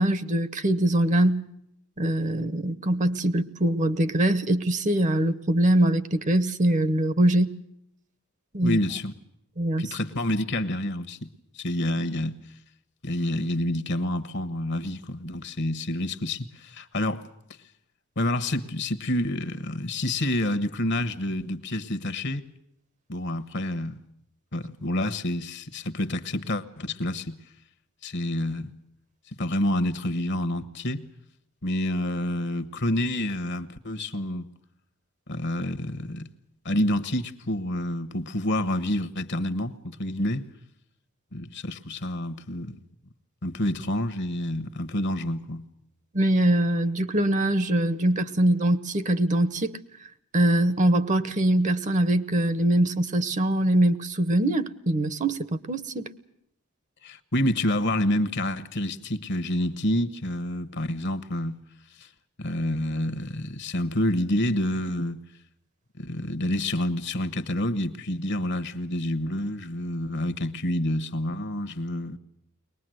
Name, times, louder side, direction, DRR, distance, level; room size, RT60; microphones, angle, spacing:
voice 1, 0.0-1.4 2.0-7.6 8.5-8.8 9.6-9.9 46.1-49.8 50.3-56.1, right 1 dB, 35° right, 0.9 m, -23 dB
voice 2, 8.6-9.1 9.8-11.3 11.5-12.4 13.0-17.3 18.2-22.4 23.1-24.0 24.5-27.4 28.0-28.7 29.3-31.0 31.6-34.5 35.3-36.3 36.6-40.4 41.3-42.8 43.4-45.6 57.0-61.6 62.0-62.1 62.4-65.2 66.0-72.2, left 1 dB, 55° left, 1.1 m, -28 dB
23.0 x 20.0 x 7.7 m
head